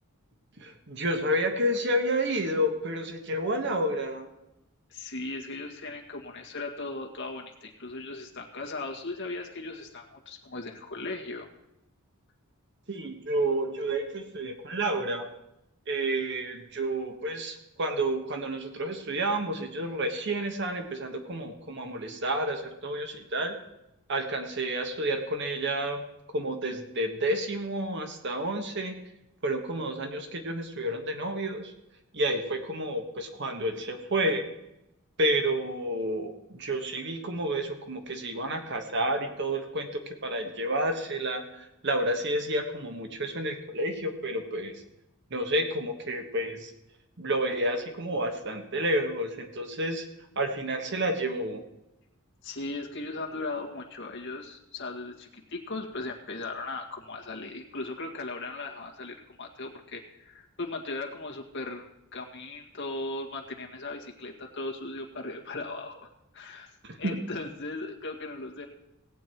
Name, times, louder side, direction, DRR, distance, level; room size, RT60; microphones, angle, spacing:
voice 1, 0.6-4.3 12.9-15.3 15.9-23.6 24.1-26.0 26.3-28.9 29.4-31.7 32.1-34.5 35.2-44.7 45.3-46.7 47.2-50.1 50.3-51.6 66.8-67.2, right 1 dB, 55° right, 5 dB, 1.4 m, -30 dB
voice 2, 4.9-11.5 52.4-66.7 67.0-68.7, left 2 dB, 55° left, 0 dB, 1.9 m, -38 dB
17.5 x 8.3 x 4.6 m, 0.87 s
head